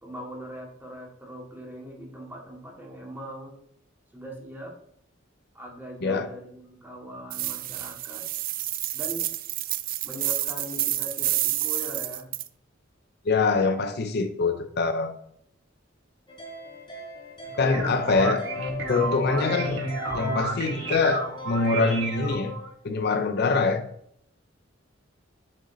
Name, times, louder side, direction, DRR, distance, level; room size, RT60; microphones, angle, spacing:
voice 1, 0.0-3.6 4.1-4.7 5.5-8.2 8.9-9.3 10.0-12.3 17.5-17.9, equal, 10° right, -1 dB, 1.7 m, -40 dB
sound 1, 7.3-12.5, right 15 dB, 45° right, 0.4 m, -29 dB
voice 2, 13.2-15.2 17.6-18.4 18.9-19.8 20.1-22.5 22.8-23.8, left 4 dB, 55° left, 8 dB, 0.6 m, -24 dB
sound 2, 16.3-22.4, left 4 dB, 25° left, 1.2 m, -39 dB
sound 3, 17.4-22.7, right 2 dB, 70° right, 1.5 m, -31 dB
6.4 x 6.1 x 2.7 m, 0.68 s
head